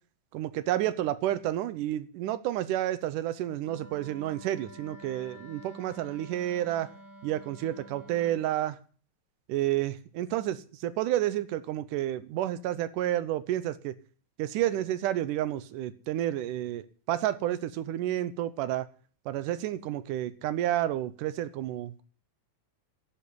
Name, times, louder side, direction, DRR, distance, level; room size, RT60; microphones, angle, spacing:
voice 1, 0.3-6.9 7.2-8.8 9.5-13.9 14.4-18.9 19.3-22.0, right 13 dB, 85° right, 2.4 m, -30 dB
Wind instrument woodwind instrument, 3.6-8.5, right 1 dB, 20° right, 2.1 m, -50 dB
11.5 x 7.2 x 9.6 m
omnidirectional pair, 3.7 m